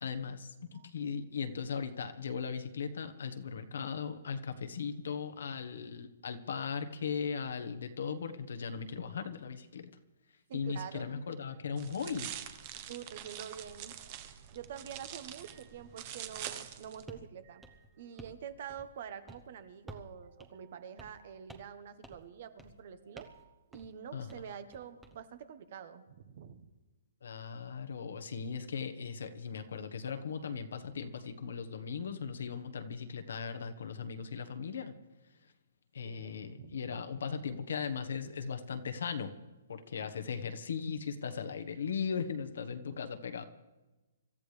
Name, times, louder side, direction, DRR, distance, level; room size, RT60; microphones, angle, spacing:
voice 1, 0.0-9.9 10.5-12.3 24.1-24.3 27.2-34.9 35.9-39.3 39.7-43.4, left 6 dB, 75° left, 8 dB, 1.3 m, -38 dB
voice 2, 10.5-11.1 11.4-11.5 12.9-26.7 36.0-37.0, right 8 dB, 50° right, 11 dB, 1.3 m, -47 dB
sound 1, 11.8-17.0, right 10 dB, 35° right, 1.1 m, -45 dB
Footstep Stone, 17.1-17.3 17.6-18.4 18.7-19.0 19.3-19.5 19.9-20.1 20.4-20.5 21.0-21.2 21.5-21.8 22.0-22.3 22.6-22.8 23.2-23.4 23.7-23.9 24.3-25.2, right 2 dB, 5° right, 1.0 m, -52 dB
26.0 x 13.5 x 3.4 m, 1.1 s
hypercardioid pair, 155°, 0 cm